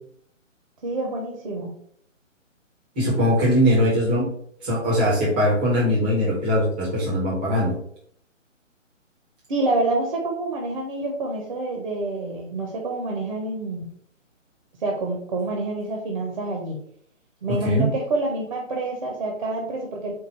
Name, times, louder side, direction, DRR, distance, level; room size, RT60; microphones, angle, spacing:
voice 1, 0.8-1.7 9.5-13.9 14.8-16.8 17.4-20.1, right 2 dB, 40° right, 0 dB, 0.7 m, -27 dB
voice 2, 3.0-4.2 4.6-7.8 17.6-17.8, equal, 10° right, -6 dB, 0.6 m, -21 dB
4.6 x 2.2 x 4.2 m, 0.66 s
figure-of-eight pair, 140°, 39 cm